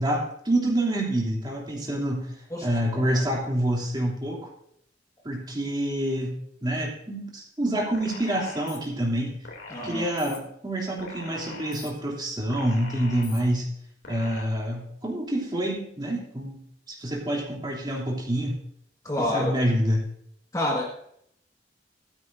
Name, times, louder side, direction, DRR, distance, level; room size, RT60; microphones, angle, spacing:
voice 1, 0.0-4.5 5.2-9.4 9.8-13.7 14.1-16.6 16.9-18.6 19.2-20.0, right 1 dB, 25° right, -2 dB, 2.9 m, -27 dB
voice 2, 2.5-3.1 9.7-10.1 19.0-19.5 20.5-20.9, left 1 dB, 20° left, -1 dB, 1.6 m, -28 dB
sound 1, 7.9-8.8 9.4-10.4 11.0-11.9 12.5-13.4 14.0-14.4, left 4 dB, 85° left, 2.8 m, -42 dB
15.0 x 13.5 x 2.6 m, 0.71 s
head